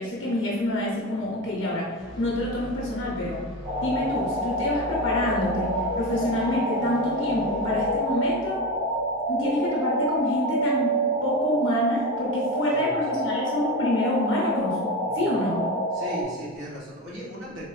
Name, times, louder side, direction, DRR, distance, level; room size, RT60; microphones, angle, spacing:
voice 1, 0.0-1.9 2.2-3.4 3.8-8.6 9.3-10.9 11.2-14.8 15.1-15.6, left 1 dB, 75° left, -4 dB, 0.9 m, -27 dB
sound 1, 2.0-10.1, left 1 dB, ahead, 1.4 m, -40 dB
sound 2, 3.6-16.2, right 1 dB, 35° right, 0.9 m, -27 dB
voice 2, 15.9-17.6, equal, 70° right, -7 dB, 1.5 m, -37 dB
4.1 x 2.9 x 3.2 m, 1.5 s
head